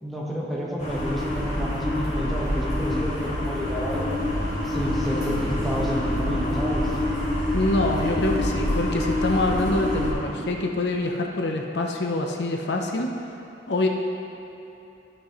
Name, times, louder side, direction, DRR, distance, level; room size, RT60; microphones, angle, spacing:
voice 1, 0.0-4.1 4.6-7.0, equal, ahead, -6 dB, 1.3 m, -30 dB
sound 1, 0.8-10.1, left 1 dB, 40° left, 2.1 m, -26 dB
voice 2, 7.5-13.1 13.7-13.9, left 2 dB, 70° left, 2 dB, 0.6 m, -25 dB
13.5 x 6.0 x 3.1 m, 2.9 s
head